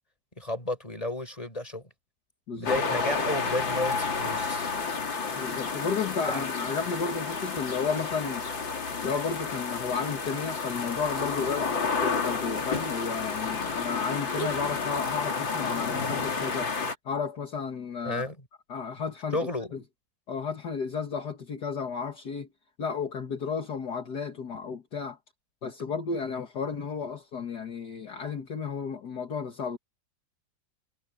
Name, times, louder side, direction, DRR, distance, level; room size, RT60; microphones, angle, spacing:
voice 1, 0.4-1.8 2.6-4.7 6.3-6.4 18.0-18.4 19.3-19.7, left 2 dB, 20° left, 6.7 m, -32 dB
sound 1, 2.6-16.9, left 4 dB, 80° left, 3.6 m, -31 dB
voice 2, 5.4-8.5 9.0-16.7 17.1-18.2 18.7-19.4 19.7-19.8 20.3-22.5 22.8-25.2 25.6-29.8, left 5 dB, 60° left, 2.4 m, -33 dB
omnidirectional pair, 2.0 m